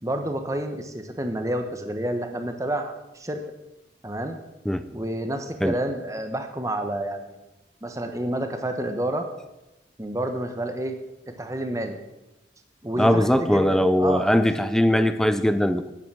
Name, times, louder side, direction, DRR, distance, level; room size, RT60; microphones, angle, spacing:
voice 1, 0.0-3.4 4.0-4.4 4.9-7.4 7.8-9.3 10.0-11.0 11.3-12.0 12.8-14.3, right 1 dB, 20° right, 7 dB, 1.0 m, -29 dB
voice 2, 13.0-15.9, left 1 dB, 5° left, 11 dB, 0.5 m, -20 dB
10.5 x 9.3 x 6.2 m, 1.0 s
head